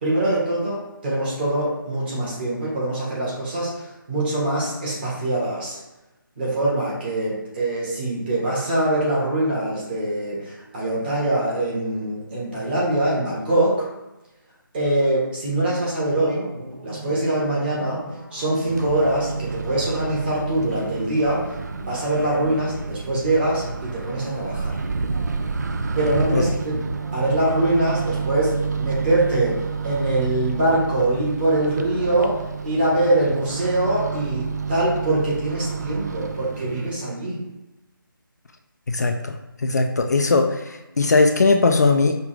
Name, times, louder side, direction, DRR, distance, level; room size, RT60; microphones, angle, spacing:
voice 1, 0.0-5.8 6.4-13.9 14.7-16.5 16.8-18.0 18.3-21.5 21.8-24.8 25.9-26.8 27.1-37.4, right 1 dB, 30° right, -6 dB, 1.4 m, -23 dB
sound 1, 16.1-27.4, right 1 dB, 85° right, 0.9 m, -38 dB
Microwave oven, 18.7-36.9, right 5 dB, 50° right, 0.4 m, -30 dB
voice 2, 38.9-39.2 39.6-42.1, left 3 dB, 50° left, 5 dB, 0.4 m, -19 dB
5.1 x 2.5 x 3.4 m, 1.0 s
figure-of-eight pair, 155°, 12 cm